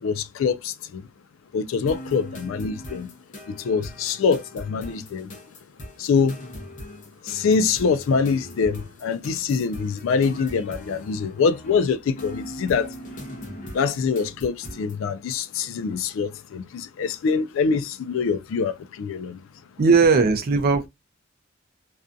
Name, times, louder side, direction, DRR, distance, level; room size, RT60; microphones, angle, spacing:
voice 1, 0.0-1.0 1.5-3.1 3.5-5.3 6.0-6.4 7.3-12.9 13.7-19.4, left 5 dB, 65° left, 0.3 m, -24 dB
sound 1, 1.9-15.0, equal, 35° left, 0.7 m, -40 dB
voice 2, 19.8-20.9, right 4 dB, 45° right, 0.4 m, -18 dB
2.5 x 2.3 x 2.4 m
head